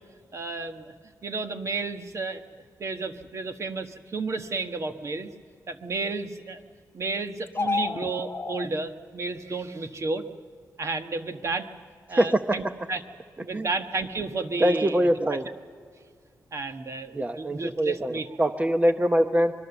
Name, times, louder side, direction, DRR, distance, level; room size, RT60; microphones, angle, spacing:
voice 1, 0.3-0.9 1.2-2.4 2.8-5.3 5.7-6.6 6.9-10.2 10.8-11.7 12.1-13.0 13.4-15.4 16.5-18.3, right 3 dB, 50° right, 7 dB, 1.4 m, -32 dB
sound 1, 7.5-8.7, left 4 dB, 35° left, 0.9 m, -29 dB
voice 2, 12.1-12.7 13.5-13.7 14.6-15.5 17.1-19.5, right 1 dB, 20° right, 8 dB, 0.8 m, -23 dB
24.5 x 22.0 x 7.1 m, 2.1 s
cardioid pair, 85°, 6 cm